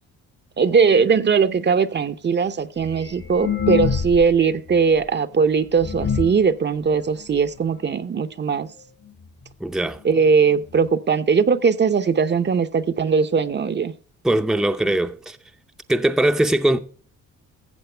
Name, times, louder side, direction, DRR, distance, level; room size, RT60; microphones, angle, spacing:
voice 1, 0.6-8.7 10.0-13.9, right 5 dB, 35° right, 0.7 m, -19 dB
sound 1, 2.8-4.4 4.7-4.8 5.4-5.5 5.8-6.5 7.2-7.3 7.6-7.7 7.9-8.2 9.1-9.2 9.4-9.5 10.2-10.3 10.5-10.6, left 6 dB, 45° left, 1.2 m, -25 dB
voice 2, 9.6-10.0 14.2-15.4 15.9-16.8, right 1 dB, ahead, 0.6 m, -20 dB
14.0 x 7.5 x 3.3 m
cardioid pair, 90°, 30 cm